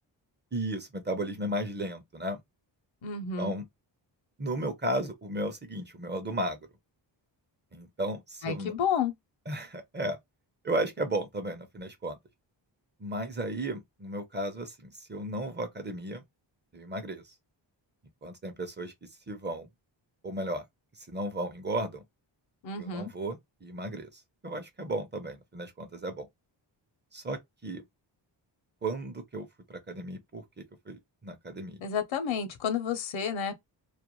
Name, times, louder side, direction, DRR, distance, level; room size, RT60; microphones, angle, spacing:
voice 1, 0.5-2.4 3.4-3.6 4.4-6.6 7.7-8.7 9.5-10.2 10.6-12.2 13.0-16.2 16.7-17.3 18.2-18.9 19.3-19.7 20.2-20.6 21.1-22.0 22.8-24.1 24.4-26.3 27.1-27.8 28.8-31.8, right 1 dB, 25° right, 0.6 m, -34 dB
voice 2, 3.0-3.6 8.4-9.1 22.6-23.1 31.8-33.5, left 7 dB, 85° left, 0.8 m, -31 dB
2.4 x 2.1 x 3.0 m
wide cardioid pair, 115°, 45 cm